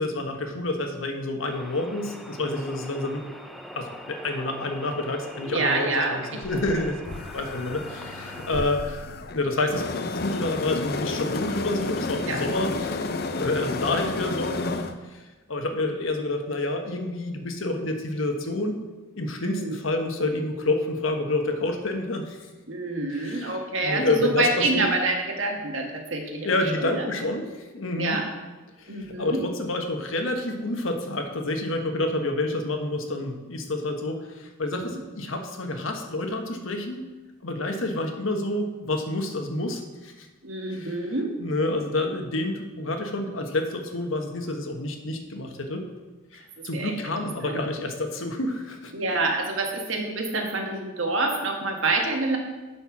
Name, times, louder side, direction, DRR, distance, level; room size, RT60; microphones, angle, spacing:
voice 1, 0.0-3.2 3.7-7.0 7.3-9.0 9.3-14.8 15.1-15.2 15.5-18.8 19.2-22.4 23.1-24.9 26.4-28.2 28.8-37.0 37.4-40.3 40.7-41.0 41.4-45.9 46.3-48.9, left 2 dB, 75° left, 4 dB, 1.2 m, -28 dB
sound 1, 1.4-8.6, equal, ahead, 0.5 m, -43 dB
voice 2, 5.5-6.2 12.3-12.4 19.4-19.8 22.7-27.1 28.0-28.2 28.9-29.4 34.7-35.0 40.4-41.3 46.7-46.9 47.4-47.6 48.9-52.4, right 2 dB, 70° right, 2 dB, 1.5 m, -27 dB
sound 2, 6.4-15.0, left 3 dB, 50° left, 0.6 m, -31 dB
10.5 x 4.5 x 5.9 m, 1.2 s
head